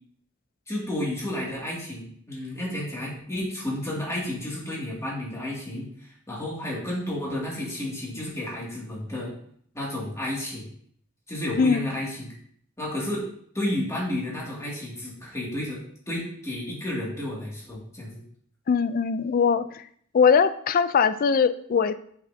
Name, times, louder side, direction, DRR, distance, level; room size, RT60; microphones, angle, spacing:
voice 1, 0.7-9.3 9.7-10.6 11.3-12.3 12.8-13.3 13.5-18.2, left 1 dB, 15° left, -5 dB, 2.2 m, -31 dB
voice 2, 18.7-19.9 20.1-21.9, left 6 dB, 45° left, 13 dB, 0.3 m, -21 dB
7.1 x 6.4 x 2.7 m, 0.63 s
head